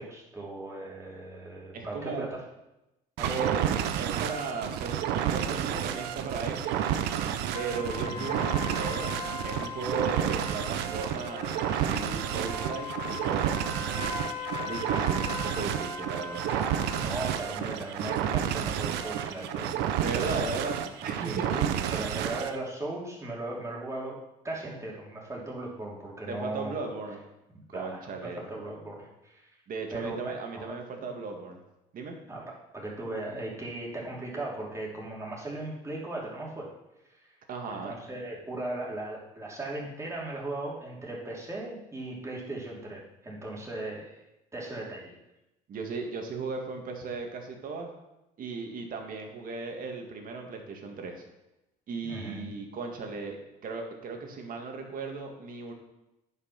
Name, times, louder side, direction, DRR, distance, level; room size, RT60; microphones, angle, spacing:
voice 1, 0.0-2.4 3.2-3.4 8.0-8.2 16.5-19.7 20.1-20.5 21.0-24.2 24.4-26.7 27.7-29.5 29.9-30.8 32.3-36.7 37.7-44.2 44.5-45.2 52.0-52.5, right 2 dB, 15° right, -3 dB, 3.0 m, -38 dB
voice 2, 1.7-2.3 3.2-7.0 7.5-9.2 9.5-13.7 14.6-16.4 20.0-21.6 26.3-27.2 27.7-28.4 29.7-31.6 31.9-32.2 37.5-37.9 45.7-47.9 48.4-51.2 51.9-55.7, right 4 dB, 55° right, 3 dB, 2.0 m, -36 dB
sound 1, 3.2-22.6, right 10 dB, 90° right, 0.7 m, -30 dB
sound 2, 7.5-17.4, left 5 dB, 35° left, 1.6 m, -40 dB
9.6 x 5.7 x 5.9 m, 0.93 s
cardioid pair, 110°, 17 cm